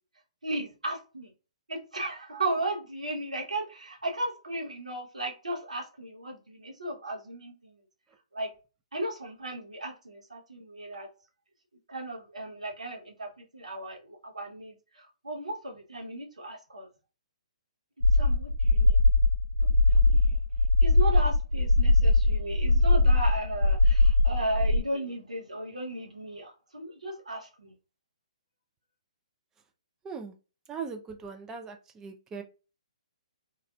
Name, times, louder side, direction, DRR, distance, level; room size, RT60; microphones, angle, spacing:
voice 1, 0.4-1.3 1.7-7.7 8.3-8.5 8.9-11.1 11.9-16.9 18.2-19.0 19.6-20.4 20.8-27.7, right 1 dB, 80° right, 0.9 m, -35 dB
sound 1, 18.0-24.8, left 2 dB, 90° left, 0.7 m, -21 dB
voice 2, 30.7-32.4, right 5 dB, 15° right, 0.3 m, -39 dB
3.2 x 2.3 x 2.2 m
figure-of-eight pair, 130°, 4 cm